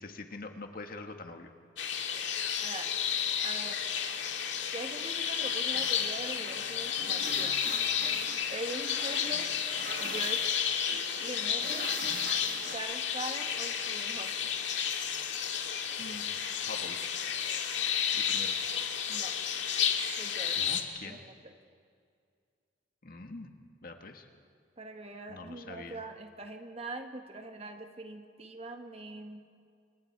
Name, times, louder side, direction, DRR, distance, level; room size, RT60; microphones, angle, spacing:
voice 1, 0.0-1.5 2.0-2.2 16.0-16.4 16.7-17.0 18.1-18.6 20.5-21.2 23.0-23.5 23.8-24.3 25.3-26.0, left 3 dB, 50° left, 5 dB, 1.7 m, -44 dB
sound 1, 1.8-20.8, left 8 dB, 80° left, 1.9 m, -32 dB
voice 2, 3.4-3.8 4.7-7.6 8.5-9.5 10.0-10.5 10.9-11.9 12.7-14.5 19.1-19.3 20.2-20.6 21.0-21.5 24.8-29.5, right 2 dB, 35° right, 5 dB, 1.7 m, -42 dB
sound 2, 5.7-12.8, right 4 dB, 50° right, 1.5 m, -45 dB
29.0 x 26.5 x 4.7 m, 2.2 s
head